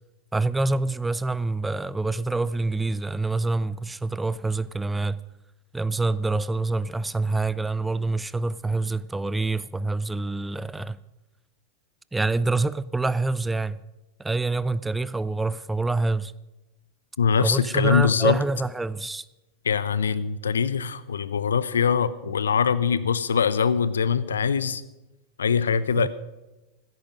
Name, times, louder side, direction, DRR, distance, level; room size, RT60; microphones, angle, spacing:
voice 1, 0.3-5.2 5.7-11.0 12.1-13.8 14.2-16.3 17.4-19.2 26.0-26.1, right 3 dB, 10° right, 0.5 m, -26 dB
voice 2, 17.2-18.4 19.6-24.8 25.4-26.1, left 6 dB, 75° left, 0.7 m, -23 dB
16.0 x 13.5 x 5.2 m
figure-of-eight pair, 90°, 0 cm